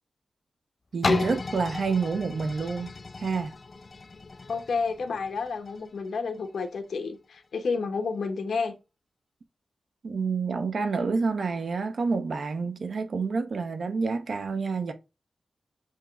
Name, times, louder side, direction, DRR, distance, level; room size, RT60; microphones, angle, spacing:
voice 1, 0.9-3.5 10.0-14.9, right 4 dB, 65° right, 0.8 m, -28 dB
sound 1, 1.0-6.8 7.3-7.4, left 3 dB, 40° left, 0.4 m, -34 dB
voice 2, 4.5-8.7, left 4 dB, 90° left, 1.1 m, -30 dB
7.4 x 3.0 x 2.3 m
wide cardioid pair, 110°, 0 cm